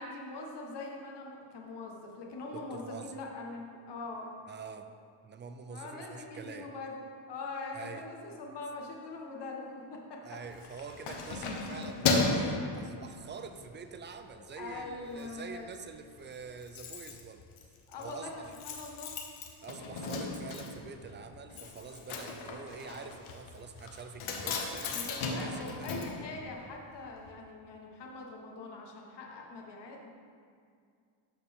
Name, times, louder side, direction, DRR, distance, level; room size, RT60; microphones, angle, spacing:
voice 1, 0.0-4.3 5.7-7.0 7.3-10.2 10.6-10.8 11.2-11.3 14.3-15.7 17.9-18.3 18.6-19.2 19.7-20.4 24.9-30.1, left 3 dB, 55° left, 0 dB, 1.3 m, -43 dB
voice 2, 2.5-3.1 4.5-4.9 5.2-6.7 7.7-8.0 10.2-17.4 18.0-18.6 19.6-26.0, right 5 dB, 25° right, 8 dB, 0.3 m, -46 dB
Keys jangling, 10.4-13.5 14.0-14.2 14.6-15.3 15.5-15.6 15.9-16.0 16.2-27.0 27.3-27.4, left 3 dB, 75° left, 1.1 m, -35 dB
13.0 x 4.4 x 3.5 m, 2.3 s
cardioid pair, 120°, 50 cm